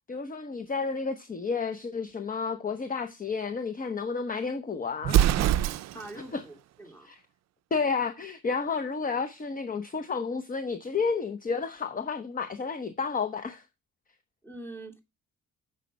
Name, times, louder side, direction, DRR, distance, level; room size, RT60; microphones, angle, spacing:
voice 1, 0.1-5.7 6.3-6.4 7.0-7.2 7.7-13.6, left 5 dB, 30° left, 0.9 m, -31 dB
Explosion, 5.0-6.2, right 12 dB, 60° right, 0.5 m, -23 dB
voice 2, 5.9-7.1 14.4-15.0, right 2 dB, 5° left, 2.4 m, -44 dB
7.5 x 5.6 x 5.2 m
cardioid pair, 90°, 30 cm